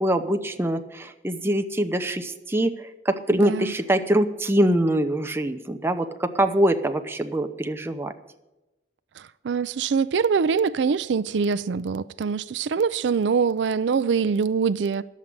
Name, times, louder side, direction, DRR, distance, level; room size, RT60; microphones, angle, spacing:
voice 1, 0.0-2.7 3.1-8.1, right 1 dB, 15° right, 0.7 m, -23 dB
voice 2, 3.4-3.7 9.2-15.0, right 5 dB, 75° right, 0.4 m, -24 dB
11.0 x 7.4 x 9.7 m
head